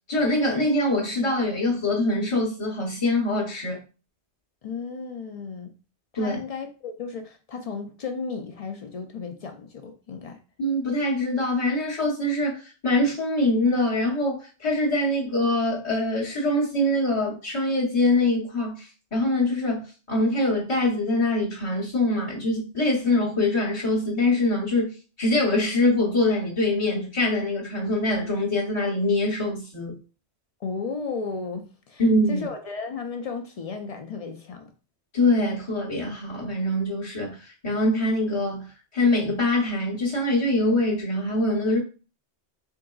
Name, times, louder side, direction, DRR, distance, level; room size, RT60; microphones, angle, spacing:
voice 1, 0.1-3.8 6.1-6.4 10.6-24.9 25.2-30.0 32.0-32.5 35.1-38.7 38.9-41.8, left 1 dB, 30° left, 0.8 m, -24 dB
voice 2, 4.6-5.7 6.1-10.4 30.6-34.7, left 4 dB, 65° left, 0.3 m, -34 dB
3.7 x 3.7 x 2.3 m
omnidirectional pair, 1.2 m